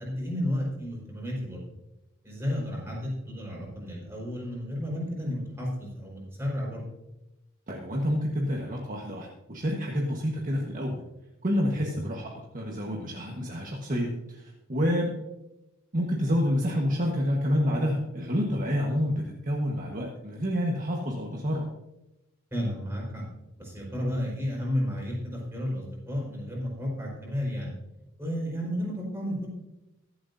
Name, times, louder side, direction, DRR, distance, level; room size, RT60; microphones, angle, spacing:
voice 1, 0.0-1.6 2.2-6.9 11.7-11.9 22.5-23.2 23.6-27.7 28.2-29.5, equal, 10° right, -4 dB, 4.6 m, -32 dB
voice 2, 7.7-11.0 11.4-15.1 15.9-21.7, equal, 40° right, -1 dB, 1.4 m, -28 dB
23.0 x 7.9 x 2.7 m, 0.94 s
head